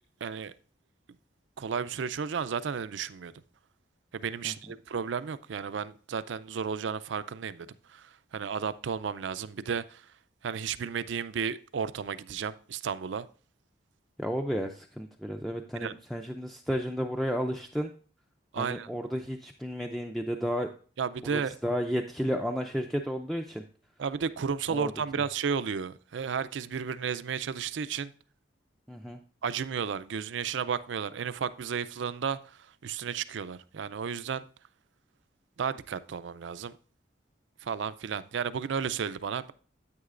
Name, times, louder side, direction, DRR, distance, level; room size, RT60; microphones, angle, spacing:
voice 1, 0.2-0.5 1.6-3.3 4.1-10.0 10.4-13.3 15.8-15.9 18.5-18.9 21.0-21.6 24.0-28.1 29.4-34.4 35.6-36.7 37.6-39.5, right 6 dB, 75° right, 0.4 m, -33 dB
voice 2, 14.2-17.9 18.6-20.7 21.3-23.6 24.7-24.9 28.9-29.2, equal, ahead, 0.4 m, -32 dB
9.6 x 8.7 x 2.5 m
head